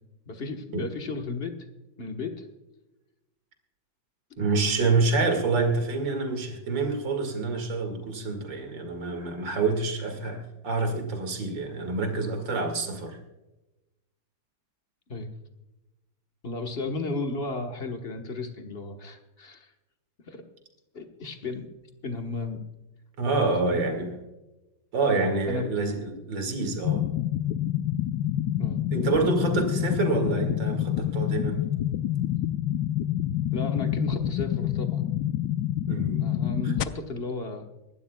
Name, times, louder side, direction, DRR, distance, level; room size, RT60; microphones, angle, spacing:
voice 1, 0.3-1.5 2.0-2.5 15.1-15.3 16.4-19.7 20.3-20.4 20.9-21.7 22.0-22.6 23.5-23.8 25.5-25.7 28.6-28.8 33.5-35.0 36.2-37.6, left 3 dB, 35° left, 4 dB, 1.3 m, -34 dB
voice 2, 4.4-13.2 23.2-24.1 24.9-27.0 28.9-31.6 35.9-36.2 36.6-36.7, right 3 dB, 65° right, 5 dB, 2.7 m, -27 dB
sound 1, 26.8-36.8, left 12 dB, 70° left, 1.0 m, -27 dB
25.5 x 12.0 x 2.3 m, 1.0 s
omnidirectional pair, 2.1 m